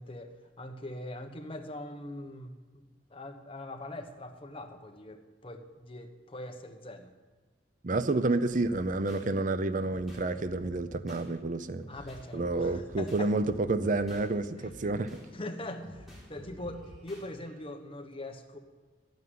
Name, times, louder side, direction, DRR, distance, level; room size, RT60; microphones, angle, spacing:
voice 1, 0.0-2.8 3.1-7.1 7.9-8.0 11.9-13.3 14.6-14.7 15.3-18.6, left 1 dB, 30° left, 5 dB, 1.2 m, -42 dB
voice 2, 7.8-11.8 12.3-15.1, right 2 dB, 45° right, 12 dB, 0.6 m, -29 dB
sound 1, 8.5-9.3 9.8-11.3 11.8-14.3 14.6-17.3, equal, ahead, 4.3 m, -49 dB
12.5 x 9.4 x 9.5 m, 1.3 s
head